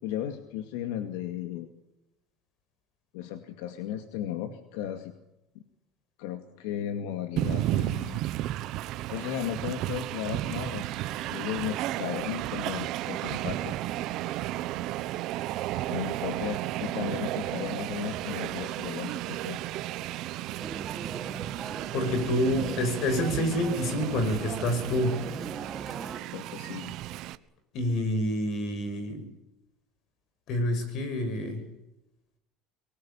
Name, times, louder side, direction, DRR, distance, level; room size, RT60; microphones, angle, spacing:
voice 1, 0.0-1.7 3.1-5.1 5.5-5.6 6.2-8.2 9.1-11.0 11.3-13.7 15.9-19.6 26.3-26.9, left 10 dB, 85° left, 7 dB, 2.2 m, -35 dB
Train, 7.4-27.4, right 15 dB, 55° right, 1.1 m, -33 dB
sound 1, 20.6-26.2, right 6 dB, 25° right, 2.1 m, -38 dB
voice 2, 21.9-25.2 27.7-29.2 30.5-31.6, left 1 dB, 50° left, 10 dB, 6.5 m, -28 dB
24.0 x 19.5 x 8.7 m, 0.90 s
cardioid pair, 150°, 0 cm